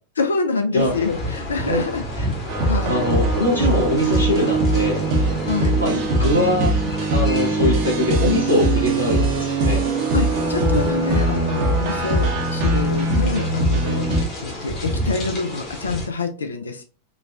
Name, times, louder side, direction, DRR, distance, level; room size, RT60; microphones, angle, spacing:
voice 1, 0.2-2.3 2.6-3.1 5.5-5.7 10.1-16.8, left 4 dB, 70° left, 5 dB, 0.3 m, -26 dB
sound 1, 0.8-16.1, left 1 dB, 40° left, 1.0 m, -31 dB
sound 2, 2.5-14.2, right 2 dB, 45° right, 0.7 m, -21 dB
voice 2, 2.9-5.0 5.8-6.7 7.1-9.8, left 1 dB, 90° left, -2 dB, 1.1 m, -22 dB
3.8 x 2.2 x 2.4 m, 0.37 s
figure-of-eight pair, 90°, 0 cm